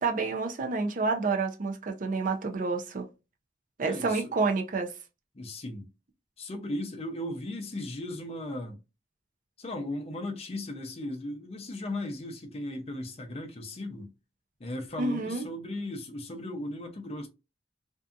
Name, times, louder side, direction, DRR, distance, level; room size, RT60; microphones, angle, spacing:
voice 1, 0.0-3.1 3.8-4.9 15.0-15.5, right 4 dB, 50° right, 0.5 m, -29 dB
voice 2, 3.8-4.3 5.3-5.9 6.4-8.8 9.6-14.1 14.6-17.3, left 1 dB, 35° left, 0.5 m, -36 dB
2.6 x 2.4 x 2.4 m
head